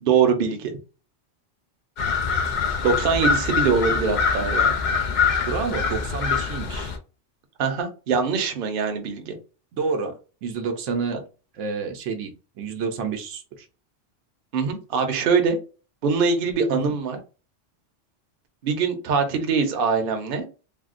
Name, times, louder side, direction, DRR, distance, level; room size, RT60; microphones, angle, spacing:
voice 1, 0.0-0.7 2.8-4.8 7.6-9.3 14.5-15.6 16.0-17.2 18.6-20.5, right 5 dB, 55° right, 5 dB, 0.8 m, -23 dB
sound 1, 2.0-7.0, left 5 dB, 55° left, 0.5 m, -24 dB
voice 2, 5.4-6.9 9.7-11.2 11.5-13.7 16.7-16.9, right 4 dB, 80° right, 5 dB, 0.9 m, -29 dB
3.4 x 2.1 x 2.4 m, 0.33 s
omnidirectional pair, 1.3 m